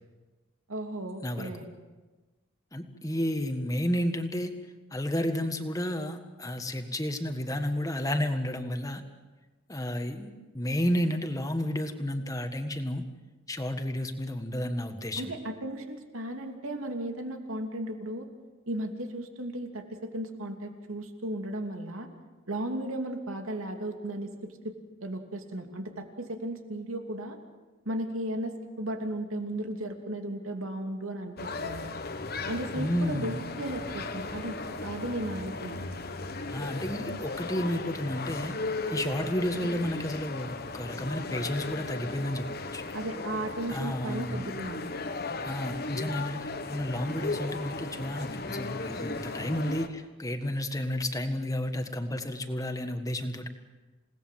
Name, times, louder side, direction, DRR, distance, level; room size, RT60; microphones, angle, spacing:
voice 1, 0.7-1.7 15.2-18.3 18.7-22.1 22.5-24.7 25.0-27.4 27.8-31.9 32.5-35.9 42.9-44.9, right 1 dB, 90° right, 4 dB, 2.8 m, -35 dB
voice 2, 2.7-4.5 4.9-9.0 9.7-13.0 13.5-15.3 32.7-33.3 36.5-38.5 38.9-42.8 43.7-44.4 45.4-53.5, left 1 dB, 15° left, 7 dB, 1.6 m, -31 dB
sound 1, 31.4-49.9, left 3 dB, 50° left, 1.3 m, -36 dB
28.5 x 18.5 x 7.6 m, 1.2 s
head